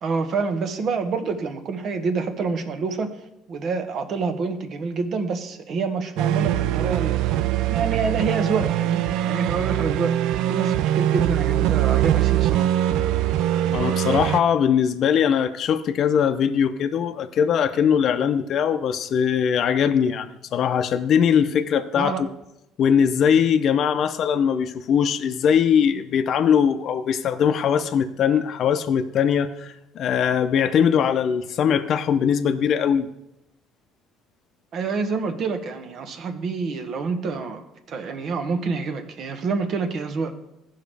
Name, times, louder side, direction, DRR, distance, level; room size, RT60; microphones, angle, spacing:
voice 1, 0.0-3.1 3.5-7.2 7.7-12.7 22.0-22.2 34.7-40.3, right 4 dB, 55° right, 7 dB, 1.2 m, -27 dB
sound 1, 6.2-14.4, right 12 dB, 80° right, 0.3 m, -22 dB
voice 2, 13.7-22.3 22.8-33.1, left 8 dB, 55° left, 8 dB, 0.6 m, -21 dB
15.5 x 5.7 x 3.4 m, 0.85 s
cardioid pair, 100°, 0 cm